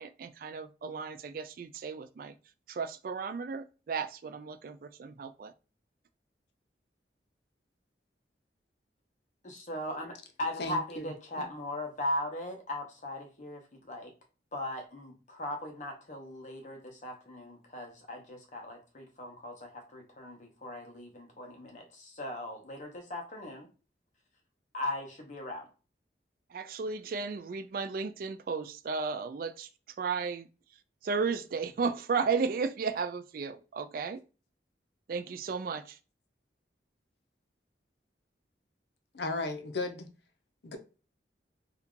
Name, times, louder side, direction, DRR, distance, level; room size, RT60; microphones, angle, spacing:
voice 1, 0.0-2.3 2.7-5.5 26.5-29.7 30.0-30.5 31.0-34.2 35.1-36.0, right 5 dB, 50° right, 0.3 m, -34 dB
voice 2, 9.4-14.1 14.5-23.7 24.7-25.7, left 1 dB, 45° left, 0.9 m, -39 dB
voice 3, 10.6-11.5 39.1-40.1 40.6-40.8, left 2 dB, 70° left, 0.6 m, -36 dB
2.8 x 2.3 x 3.6 m
head